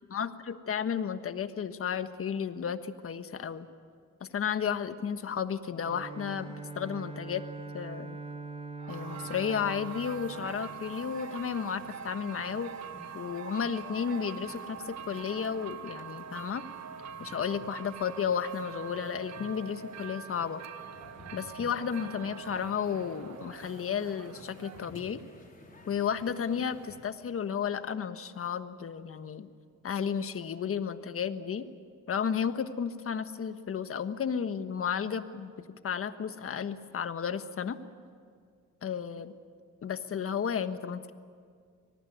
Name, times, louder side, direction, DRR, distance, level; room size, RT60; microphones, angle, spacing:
voice 1, 0.1-3.7 4.2-7.4 7.7-8.2 8.9-12.7 13.1-16.6 17.2-20.6 21.3-25.2 25.9-29.5 29.8-31.7 32.1-37.8 38.8-39.3 39.8-41.1, left 7 dB, 45° left, 10 dB, 1.4 m, -33 dB
Bowed string instrument, 5.7-11.4, right 3 dB, 20° right, 1.3 m, -43 dB
sound 1, 8.8-25.2, right 8 dB, 60° right, 1.5 m, -44 dB
sound 2, 8.9-27.0, left 2 dB, 30° left, 4.8 m, -54 dB
24.5 x 19.0 x 9.4 m, 2.1 s
cardioid pair, 90°, 30 cm